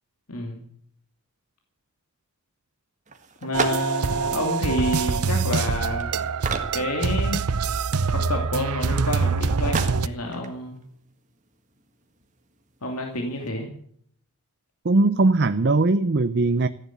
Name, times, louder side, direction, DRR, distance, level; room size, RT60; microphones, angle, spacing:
voice 1, 0.3-0.7 3.4-6.1 6.7-7.5 8.1-10.7 12.8-13.7, left 1 dB, 85° left, 2 dB, 2.6 m, -29 dB
sound 1, 3.1-13.5, right 4 dB, 35° right, 1.7 m, -38 dB
sound 2, 3.5-10.1, right 5 dB, 90° right, 0.7 m, -25 dB
voice 2, 14.8-16.7, right 2 dB, 50° right, 12 dB, 0.6 m, -20 dB
15.0 x 10.0 x 8.2 m, 0.63 s
head